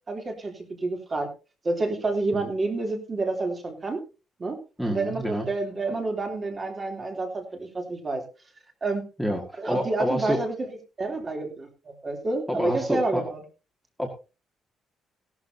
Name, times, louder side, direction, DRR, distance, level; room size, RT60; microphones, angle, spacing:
voice 1, 0.1-1.3 1.6-4.0 4.4-4.6 4.9-8.2 8.8-9.0 9.6-13.4, right 2 dB, 25° right, 3 dB, 3.1 m, -29 dB
voice 2, 4.8-5.5 9.2-10.4 12.5-13.2 14.0-14.1, equal, ahead, 0 dB, 1.9 m, -28 dB
17.0 x 12.0 x 2.8 m, 0.31 s
cardioid pair, 160°, 0 cm